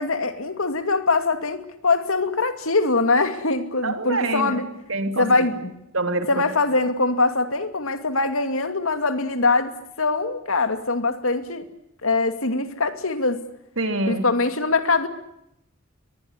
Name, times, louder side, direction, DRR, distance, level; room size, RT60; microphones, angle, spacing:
voice 1, 0.0-4.7 5.2-5.7 6.3-11.7 12.0-13.4 14.1-15.1, left 3 dB, 85° left, 9 dB, 2.6 m, -23 dB
voice 2, 3.8-5.5 5.9-6.4 13.8-14.2, right 2 dB, 75° right, 7 dB, 3.3 m, -26 dB
23.0 x 20.5 x 10.0 m, 0.79 s
head